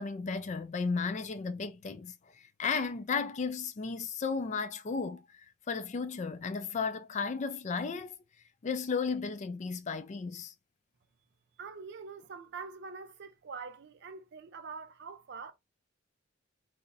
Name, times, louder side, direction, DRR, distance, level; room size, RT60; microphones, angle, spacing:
voice 1, 0.0-8.1 8.6-10.5, left 5 dB, 35° left, 0.3 m, -34 dB
voice 2, 11.6-15.5, right 5 dB, 55° right, 0.4 m, -44 dB
3.8 x 2.1 x 2.5 m
head